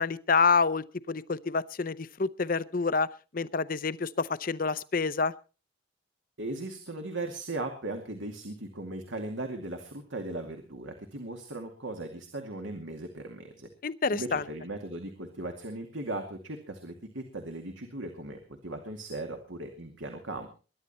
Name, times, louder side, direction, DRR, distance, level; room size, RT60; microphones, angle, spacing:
voice 1, 0.0-3.1 3.3-5.3 13.8-14.4, left 4 dB, 45° left, 16 dB, 0.6 m, -27 dB
voice 2, 6.4-13.7 14.1-20.5, right 2 dB, 70° right, 4 dB, 2.3 m, -38 dB
21.5 x 11.0 x 4.3 m, 0.35 s
head